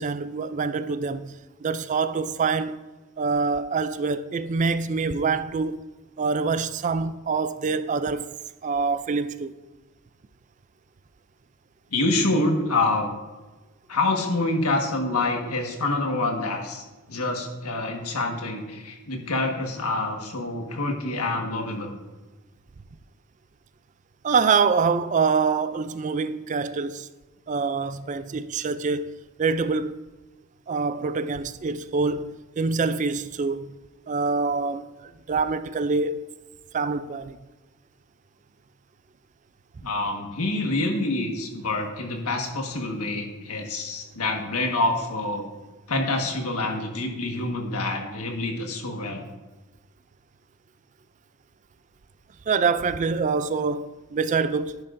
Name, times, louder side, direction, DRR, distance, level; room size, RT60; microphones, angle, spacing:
voice 1, 0.0-2.8 3.2-5.8 6.2-8.3 8.6-9.5 24.2-27.1 27.5-30.0 30.7-33.7 34.1-36.3 36.7-37.4 52.5-54.8, right 4 dB, 35° right, 0.3 m, -25 dB
voice 2, 11.9-13.1 13.9-22.0 39.8-45.5 45.9-49.2, left 2 dB, 90° left, 1.5 m, -27 dB
11.0 x 9.9 x 2.6 m
head